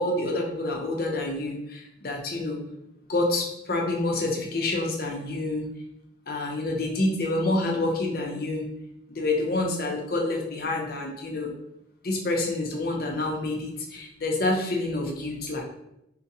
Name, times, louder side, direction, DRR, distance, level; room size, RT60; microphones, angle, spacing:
voice 1, 0.0-2.6 3.1-5.7 6.3-8.7 9.1-11.5 12.0-15.6, left 2 dB, 55° left, 1 dB, 0.7 m, -28 dB
4.5 x 2.2 x 2.7 m, 0.81 s
head